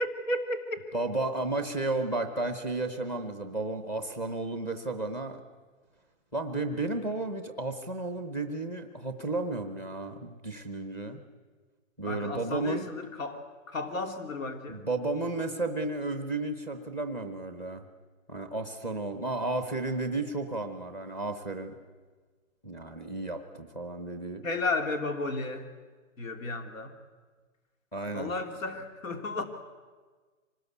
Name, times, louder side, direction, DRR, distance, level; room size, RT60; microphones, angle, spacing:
voice 1, 0.0-0.9 12.0-14.8 24.4-25.7 26.2-27.0 28.1-29.4, left 2 dB, 80° left, 7 dB, 3.1 m, -33 dB
voice 2, 0.9-5.4 6.3-11.2 12.0-12.9 14.7-17.8 18.3-21.7 22.6-24.4 27.9-28.3, right 2 dB, 5° left, 7 dB, 0.7 m, -33 dB
25.0 x 19.5 x 8.2 m, 1.4 s
hypercardioid pair, 170°, 39 cm